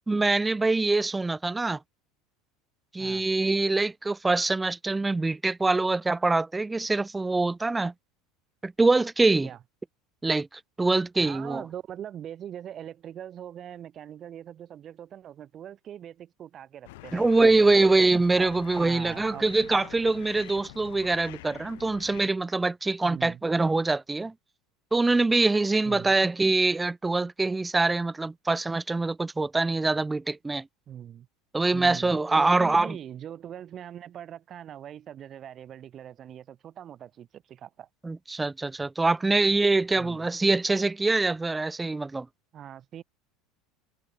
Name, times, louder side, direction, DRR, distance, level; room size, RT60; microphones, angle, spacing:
voice 1, 0.1-1.8 2.9-7.9 8.6-9.5 10.2-11.6 17.1-24.3 24.9-30.7 31.5-33.0 38.0-42.3, right 3 dB, 10° right, 0.5 m, -24 dB
voice 2, 11.1-17.5 18.4-19.4 23.0-23.4 25.9-26.1 30.9-31.3 31.7-37.9 40.0-40.2 42.5-43.0, right 10 dB, 40° right, 3.5 m, -42 dB
sound 1, 16.8-22.3, left 21 dB, 80° left, 4.4 m, -46 dB
supercardioid pair, 110°, 0 cm